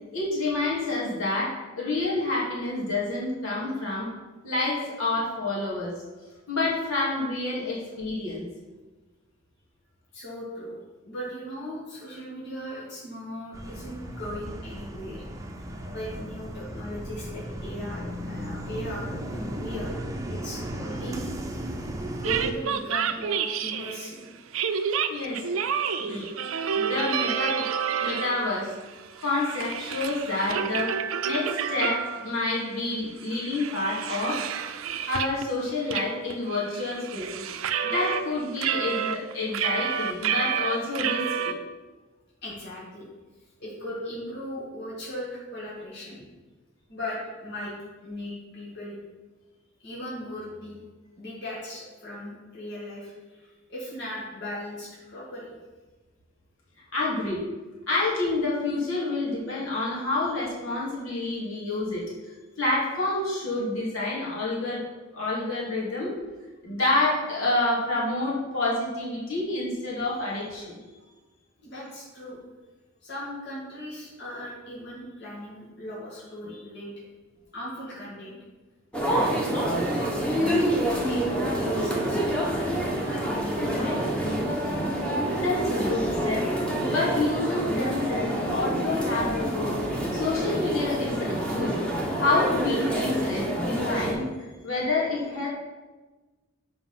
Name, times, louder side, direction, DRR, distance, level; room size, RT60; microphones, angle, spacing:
voice 1, 0.1-4.1 4.4-5.9 6.5-8.4 15.8-16.0 25.1-25.6 26.1-26.3 26.7-27.7 28.0-28.7 29.2-30.9 31.2-34.4 35.1-37.4 37.8-41.6 56.9-57.4 57.9-62.0 62.6-64.8 65.1-66.1 66.6-70.8 85.3-86.5 86.9-89.8 90.1-91.8 92.2-95.5, left 2 dB, 85° left, -6 dB, 2.8 m, -28 dB
voice 2, 10.1-10.8 11.0-15.2 15.9-19.9 20.3-21.6 22.2-24.3 25.2-25.3 42.4-43.1 43.6-46.2 46.9-47.7 48.0-49.0 49.8-50.8 51.2-55.5 71.6-72.4 73.0-76.9 77.5-78.4 79.1-80.6 81.0-82.8 83.0-84.6 89.7-89.8 93.9-94.1, equal, 55° left, -7 dB, 2.3 m, -38 dB
sound 1, 13.5-22.5, right 1 dB, 15° right, 0.7 m, -36 dB
sound 2, 22.2-24.1 24.5-28.6 28.9-32.3 32.7-32.8 33.2-35.5 35.9-36.0 36.3-38.2 38.6-41.5, right 7 dB, 85° right, 0.5 m, -29 dB
sound 3, 78.9-94.1, right 1 dB, 5° left, 1.2 m, -27 dB
7.6 x 4.8 x 5.8 m, 1.2 s
head